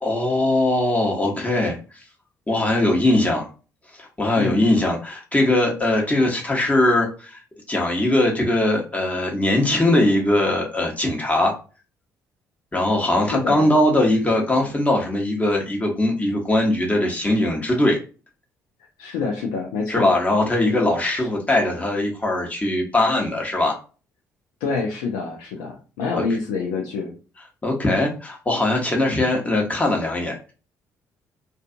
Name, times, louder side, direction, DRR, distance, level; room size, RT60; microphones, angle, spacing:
voice 1, 0.0-1.8 2.5-3.5 4.0-7.4 7.7-11.5 12.7-18.0 19.9-23.8 26.1-26.2 27.6-30.5, left 1 dB, 20° left, 0 dB, 0.9 m, -20 dB
voice 2, 4.4-4.7 13.2-13.7 19.0-20.1 21.2-21.3 24.6-27.2, left 4 dB, 75° left, 1 dB, 0.5 m, -27 dB
2.4 x 2.3 x 2.5 m, 0.35 s
hypercardioid pair, 50°, 8 cm